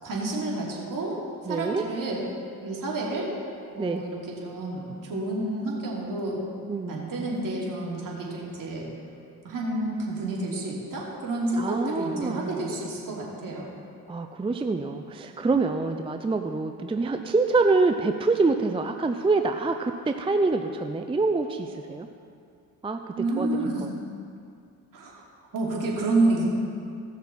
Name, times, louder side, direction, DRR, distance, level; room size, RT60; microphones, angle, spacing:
voice 1, 0.0-1.2 1.4-2.2 2.6-3.3 3.7-6.4 6.9-8.9 9.4-13.7 23.2-23.9 24.9-25.2 25.5-26.4, right 2 dB, 55° right, -4 dB, 2.9 m, -29 dB
voice 2, 1.5-1.9 3.8-4.0 6.7-7.1 11.5-12.6 14.1-22.1 22.8-23.0 23.4-23.9, right 3 dB, 15° right, 5 dB, 0.5 m, -26 dB
17.0 x 6.3 x 4.2 m, 2.4 s
supercardioid pair, 70°, 39 cm